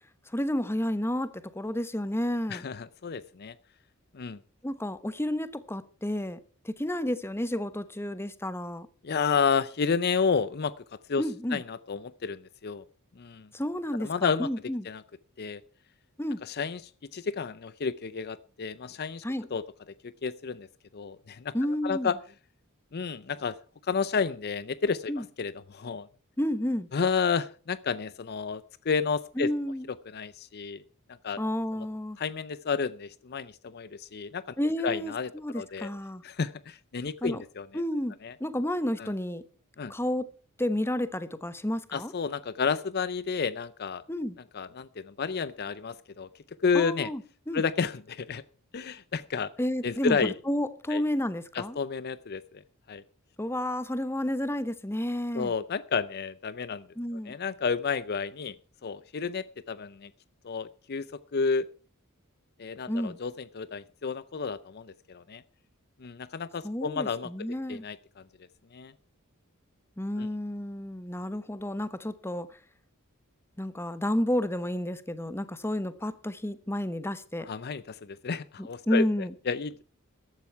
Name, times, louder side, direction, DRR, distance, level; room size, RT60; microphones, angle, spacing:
voice 1, 0.3-2.6 4.6-6.4 6.6-8.9 11.2-11.6 13.5-14.9 16.2-16.4 19.2-19.5 21.5-22.2 25.1-25.2 26.4-26.9 29.4-29.9 31.4-32.2 34.6-36.2 37.2-37.4 37.7-38.1 38.4-39.4 39.9-40.3 40.6-42.1 44.1-44.4 46.7-47.2 47.5-47.6 49.6-51.8 53.4-55.5 57.0-57.4 62.9-63.2 66.6-67.8 70.0-72.5 73.6-77.5 78.6-79.3, left 1 dB, 10° left, 14 dB, 1.0 m, -31 dB
voice 2, 2.5-3.5 4.1-4.4 9.0-10.7 11.1-11.2 11.5-12.8 13.2-13.5 14.0-14.5 14.9-15.0 15.4-15.6 16.4-16.8 17.1-19.2 19.5-19.6 20.2-20.7 20.9-21.5 21.8-22.1 22.9-23.6 23.9-26.1 26.9-29.5 30.1-30.8 31.2-31.4 32.2-34.5 34.8-35.9 36.2-37.7 38.2-38.3 39.0-39.1 39.8-39.9 41.9-44.0 44.5-46.3 46.6-47.1 47.5-48.4 48.7-49.5 49.8-50.3 50.9-51.0 51.5-52.6 52.9-53.0 55.3-56.9 57.3-58.6 58.8-60.1 60.4-61.0 61.3-61.7 62.6-65.4 66.0-67.3 67.7-68.0 68.7-68.9 70.2-70.3 77.5-79.0 79.5-79.9, left 5 dB, 50° left, 17 dB, 0.5 m, -31 dB
14.5 x 12.0 x 4.6 m, 0.40 s
head